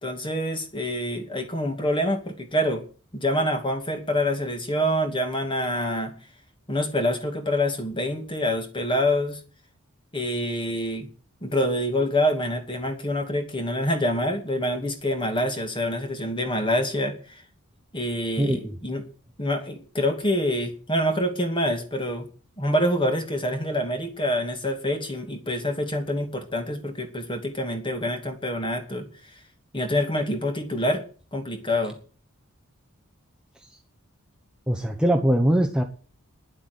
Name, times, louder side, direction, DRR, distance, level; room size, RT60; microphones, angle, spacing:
voice 1, 0.0-2.8 3.1-6.1 6.7-9.4 10.1-11.1 11.4-17.4 17.9-19.0 19.4-22.3 22.6-29.1 29.7-31.0 31.3-32.0, left 1 dB, 25° left, 5 dB, 2.4 m, -26 dB
voice 2, 18.4-18.7 33.6-33.8 34.7-35.8, right 1 dB, 5° right, 2 dB, 1.1 m, -22 dB
10.5 x 8.0 x 9.7 m, 0.39 s
head